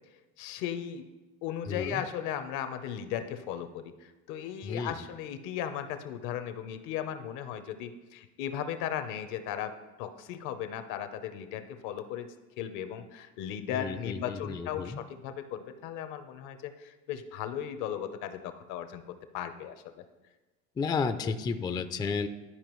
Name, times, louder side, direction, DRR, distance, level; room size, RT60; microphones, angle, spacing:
voice 1, 0.4-1.1 1.4-12.3 12.6-20.0 21.2-21.3, left 9 dB, 70° left, 9 dB, 0.8 m, -37 dB
voice 2, 1.7-2.0 4.6-5.0 13.7-15.0 20.8-22.3, left 5 dB, 15° left, 9 dB, 0.3 m, -32 dB
11.5 x 4.8 x 3.1 m, 1.1 s
supercardioid pair, 100°, 32 cm